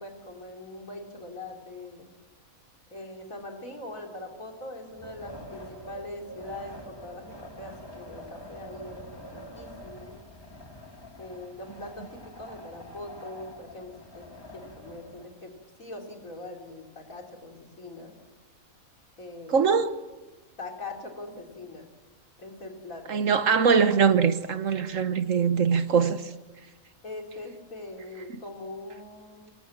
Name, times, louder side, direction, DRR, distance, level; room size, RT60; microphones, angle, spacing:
voice 1, 0.0-2.1 2.9-9.0 9.3-10.2 11.2-14.3 14.5-15.5 15.8-18.1 19.2-19.7 20.6-21.9 22.4-23.2 27.0-29.5, left 2 dB, 70° left, 4.1 m, -42 dB
Wind, 4.9-15.3, equal, 15° left, 2.1 m, -45 dB
voice 2, 19.5-19.9 23.1-26.2, right 6 dB, 65° right, 1.5 m, -22 dB
25.5 x 22.5 x 7.4 m
omnidirectional pair, 1.5 m